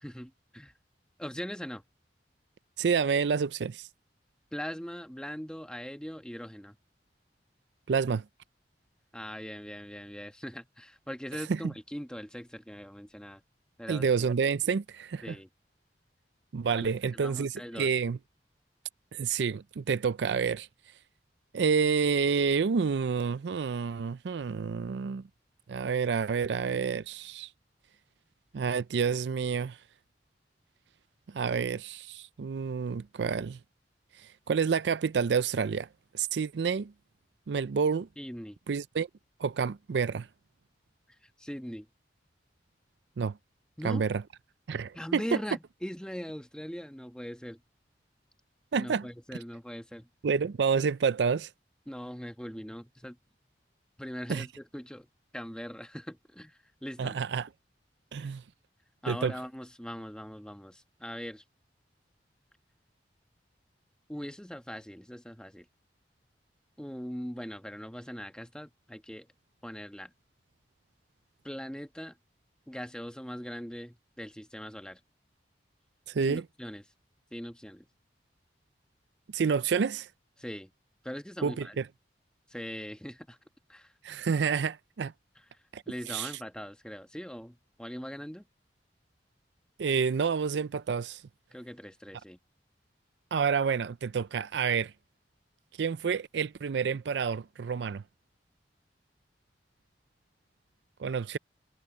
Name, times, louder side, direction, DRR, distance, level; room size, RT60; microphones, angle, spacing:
voice 1, 0.0-0.7 1.2-1.8 4.5-6.8 9.1-13.4 13.8-14.1 15.2-15.5 16.7-17.9 38.2-38.6 41.2-41.9 43.8-44.0 44.9-47.6 48.8-50.1 51.9-53.2 54.0-55.1 55.3-57.2 58.2-58.3 59.0-61.4 64.1-65.7 66.8-69.3 69.6-70.1 71.4-72.2 72.7-75.0 76.2-76.8 77.3-77.9 80.4-80.7 81.0-81.8 82.5-83.4 83.7-83.9 85.9-88.5 91.5-92.4, equal, 5° left, 1.3 m, -41 dB
voice 2, 2.8-3.9 7.9-8.2 11.5-11.6 13.9-15.3 16.5-18.2 19.1-20.7 21.5-25.2 25.7-27.5 28.5-29.8 31.3-33.6 34.5-35.9 36.1-36.9 37.5-38.1 38.7-39.1 39.4-40.3 43.2-43.4 43.8-44.2 44.7-45.2 48.7-49.1 50.2-51.5 54.3-54.5 57.0-57.5 58.1-58.4 59.1-59.3 76.1-76.4 79.3-80.1 81.4-81.8 84.0-85.1 85.7-85.8 86.1-86.3 89.8-91.2 93.3-94.9 95.8-98.0 101.0-101.4, right 6 dB, 75° right, 0.4 m, -29 dB
head